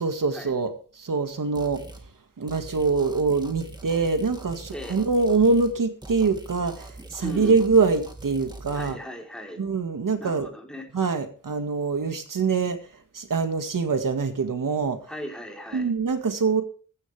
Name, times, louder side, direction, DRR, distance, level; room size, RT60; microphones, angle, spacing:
voice 1, 0.0-1.8 2.4-9.0 9.6-10.5 10.9-12.8 13.1-15.0 15.7-16.6, right 4 dB, 90° right, 7 dB, 2.1 m, -24 dB
sound 1, 1.6-2.1 2.5-5.8 6.0-8.9, right 2 dB, 15° right, 2.2 m, -43 dB
voice 2, 7.2-7.6 8.7-9.6 10.2-10.9 15.1-15.9, equal, ahead, 0 dB, 4.1 m, -37 dB
15.0 x 14.0 x 3.5 m, 0.40 s
wide cardioid pair, 80°, 31 cm